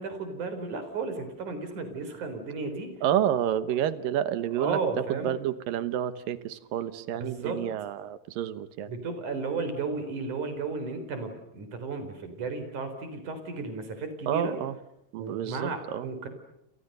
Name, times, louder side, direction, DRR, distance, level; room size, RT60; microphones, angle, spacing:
voice 1, 0.0-2.9 4.6-5.3 7.2-7.6 8.9-14.6 15.2-16.3, right 4 dB, 60° right, 8 dB, 5.5 m, -34 dB
voice 2, 3.0-4.8 5.1-8.9 14.3-14.8 15.1-16.1, right 10 dB, 85° right, 14 dB, 2.9 m, -29 dB
29.5 x 28.5 x 6.8 m, 0.85 s
omnidirectional pair, 3.9 m